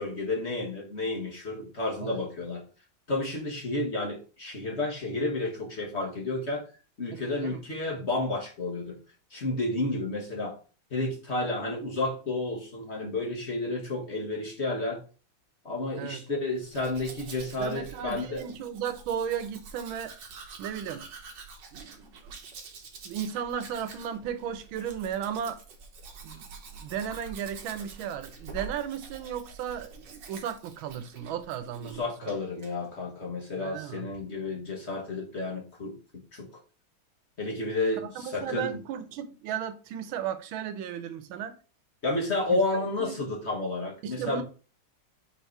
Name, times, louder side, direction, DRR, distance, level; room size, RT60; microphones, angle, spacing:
voice 1, 0.0-2.6 3.1-6.6 7.0-9.0 9.3-10.6 10.9-15.0 15.6-18.4 31.8-36.0 36.3-36.5 37.4-38.8 42.0-44.4, left 2 dB, 35° left, 1.5 m, -31 dB
voice 2, 7.1-7.6 16.0-16.3 17.6-20.1 20.6-21.1 21.7-22.3 23.0-25.6 26.2-26.5 26.7-32.4 33.6-34.1 38.0-41.6 42.5-42.6 43.0-43.2 44.0-44.4, right 9 dB, 90° right, 1.5 m, -35 dB
Domestic sounds home sounds, 16.6-32.0 32.3-32.7, right 5 dB, 65° right, 1.7 m, -46 dB
4.7 x 4.5 x 4.5 m
omnidirectional pair, 2.1 m